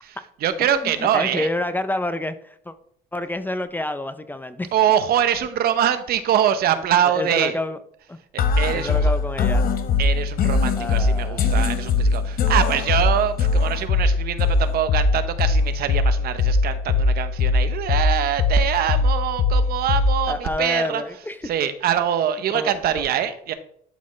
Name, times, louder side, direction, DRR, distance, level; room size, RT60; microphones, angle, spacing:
voice 1, 0.0-1.5 4.7-7.6 8.3-9.1 10.0-21.0 21.4-23.5, right 9 dB, 65° right, 11 dB, 0.8 m, -23 dB
voice 2, 0.7-2.7 3.1-4.7 7.0-7.8 8.1-8.2 8.7-9.6 10.8-11.6 20.3-21.5 22.5-23.0, left 1 dB, 10° left, 11 dB, 0.5 m, -28 dB
sound 1, 8.4-20.4, left 3 dB, 60° left, 0.8 m, -21 dB
11.5 x 4.1 x 3.2 m, 0.65 s
cardioid pair, 110°, 17 cm